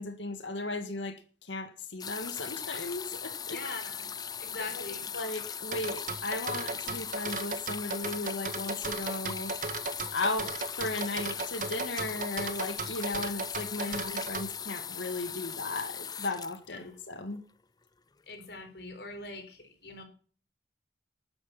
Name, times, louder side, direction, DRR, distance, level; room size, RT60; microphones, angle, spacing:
voice 1, 0.0-3.6 4.8-4.9 5.1-9.5 10.1-17.4, left 2 dB, 90° left, 1.9 m, -36 dB
sound 1, 2.0-17.4 18.3-18.4, left 7 dB, 20° left, 0.6 m, -39 dB
voice 2, 3.5-4.1 4.4-5.1 13.8-14.1 16.7-16.9 18.3-20.0, left 3 dB, 65° left, 4.1 m, -42 dB
sound 2, 5.7-14.5, right 4 dB, 45° right, 1.7 m, -36 dB
12.5 x 9.9 x 7.1 m
head